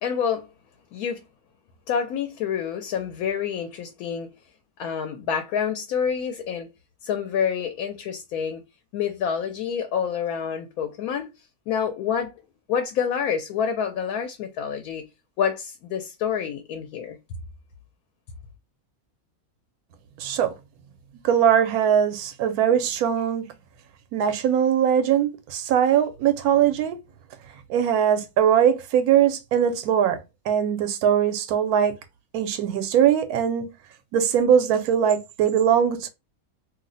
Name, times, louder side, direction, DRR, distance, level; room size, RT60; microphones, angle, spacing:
voice 1, 0.0-0.5 0.9-1.2 1.9-4.3 4.8-6.7 7.0-8.6 8.9-11.3 11.7-12.3 12.7-15.0 15.4-17.2, left 7 dB, 80° left, 1.0 m, -27 dB
voice 2, 20.2-20.5 21.2-23.5 24.1-27.0 27.7-30.2 30.5-31.9 32.3-33.6 34.1-36.1, right 9 dB, 80° right, 1.1 m, -21 dB
2.7 x 2.0 x 3.8 m
omnidirectional pair, 1.6 m